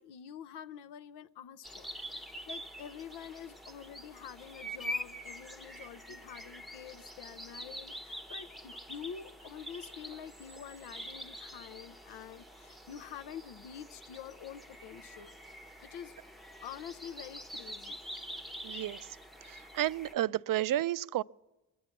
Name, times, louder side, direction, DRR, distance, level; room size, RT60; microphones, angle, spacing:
voice 1, 0.0-15.3 15.8-16.1 16.6-18.0, left 8 dB, 75° left, 0.6 m, -47 dB
sound 1, 1.6-20.1, equal, ahead, 0.8 m, -45 dB
voice 2, 18.6-19.0 19.5-21.2, right 13 dB, 55° right, 0.5 m, -31 dB
21.5 x 8.5 x 7.0 m
supercardioid pair, 45°, 40 cm